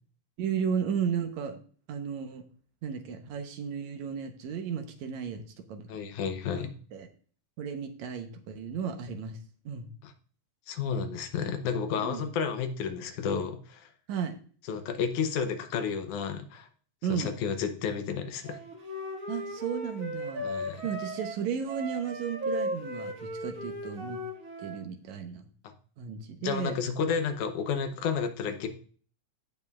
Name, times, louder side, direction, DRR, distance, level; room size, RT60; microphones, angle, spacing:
voice 1, 0.4-1.6 1.9-2.4 2.8-5.9 6.5-7.1 7.6-9.4 9.7-9.9 12.0-12.2 14.1-14.3 17.0-17.3 19.3-24.2 24.6-25.4 26.0-26.8, right 7 dB, 75° right, 6 dB, 2.2 m, -34 dB
voice 2, 5.9-6.7 10.0-10.1 10.7-13.9 14.7-16.7 17.1-18.6 20.4-20.8 26.4-28.7, left 6 dB, 90° left, 7 dB, 2.4 m, -31 dB
Wind instrument woodwind instrument, 18.4-24.8, equal, 30° right, 1.9 m, -36 dB
16.0 x 5.4 x 2.4 m, 0.43 s
omnidirectional pair, 3.4 m